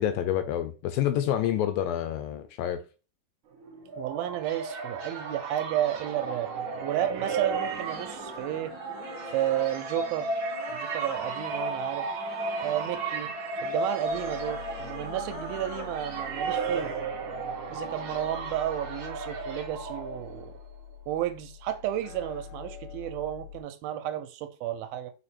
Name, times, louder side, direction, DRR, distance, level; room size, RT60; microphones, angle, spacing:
voice 1, 0.0-2.8, left 11 dB, 80° left, 2.2 m, -28 dB
sound 1, 3.6-20.6, right 3 dB, 60° right, 1.6 m, -34 dB
voice 2, 4.0-6.5 6.8-8.8 9.3-10.3 10.7-12.1 12.6-13.3 13.6-17.0 17.7-20.6 21.1-25.1, right 12 dB, 80° right, 2.2 m, -32 dB
sound 2, 7.2-17.1, equal, 10° left, 1.0 m, -44 dB
sound 3, 14.0-23.6, left 7 dB, 65° left, 1.9 m, -45 dB
4.9 x 4.6 x 4.3 m
omnidirectional pair, 4.5 m